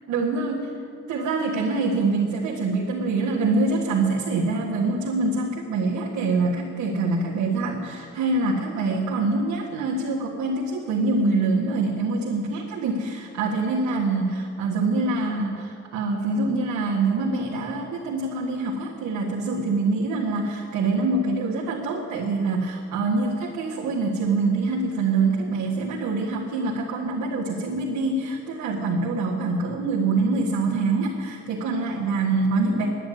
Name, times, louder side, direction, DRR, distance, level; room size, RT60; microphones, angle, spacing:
voice 1, 0.1-0.6 1.1-32.9, right 3 dB, 85° right, -6 dB, 1.8 m, -25 dB
10.5 x 9.8 x 9.3 m, 2.4 s
cardioid pair, 150°, 29 cm